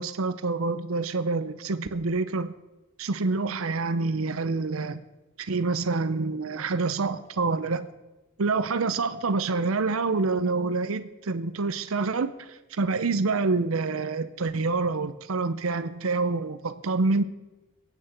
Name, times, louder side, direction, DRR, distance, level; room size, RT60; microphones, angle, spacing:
voice 1, 0.0-2.5 3.0-5.0 5.4-7.9 8.4-17.2, right 3 dB, 80° right, 13 dB, 0.7 m, -27 dB
22.5 x 8.9 x 4.4 m, 1.1 s
head